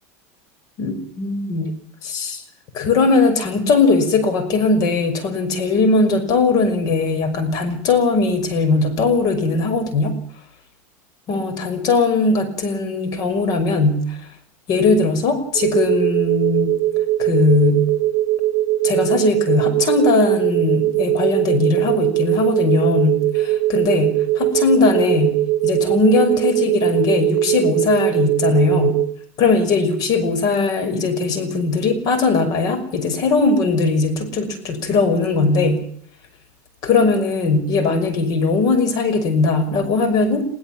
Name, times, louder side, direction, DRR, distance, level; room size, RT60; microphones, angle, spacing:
voice 1, 0.8-1.7 2.0-2.4 2.7-10.1 11.3-14.2 14.7-16.7 17.2-17.8 18.8-25.4 25.6-29.0 29.4-35.8 36.8-40.5, left 3 dB, 50° left, 9 dB, 5.7 m, -19 dB
sound 1, 15.6-29.1, right 14 dB, 40° right, 2.0 m, -20 dB
22.5 x 16.5 x 7.4 m, 0.62 s
supercardioid pair, 115°, 8 cm